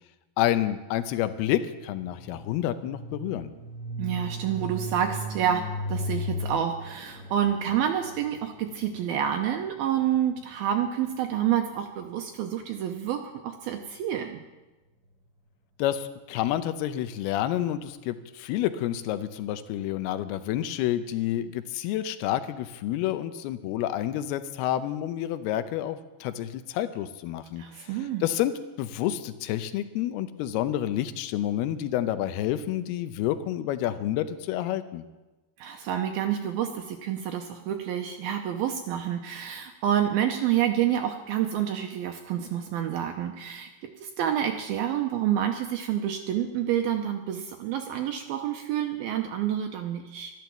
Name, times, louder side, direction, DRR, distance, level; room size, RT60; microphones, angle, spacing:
voice 1, 0.4-3.5 15.8-27.9 28.2-35.1, left 12 dB, 80° left, 11 dB, 2.5 m, -29 dB
sound 1, 1.4-11.3, equal, 45° right, 2.0 m, -37 dB
voice 2, 4.0-14.4 27.6-28.2 35.6-43.7 44.0-50.3, right 10 dB, 80° right, 4 dB, 2.3 m, -28 dB
12.5 x 12.0 x 7.1 m, 1.1 s
omnidirectional pair, 5.0 m